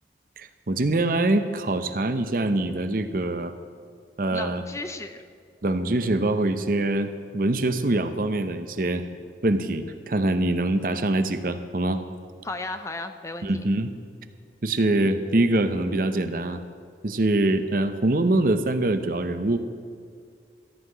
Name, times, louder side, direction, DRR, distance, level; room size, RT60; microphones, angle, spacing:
voice 1, 0.4-3.5 4.2-4.6 5.6-9.0 9.4-12.0 13.4-13.9 14.6-16.6 17.0-19.6, right 2 dB, 50° right, 9 dB, 0.7 m, -24 dB
voice 2, 4.3-5.2 12.4-13.7, left 2 dB, 15° left, 8 dB, 0.5 m, -34 dB
14.0 x 5.8 x 9.3 m, 2.2 s
head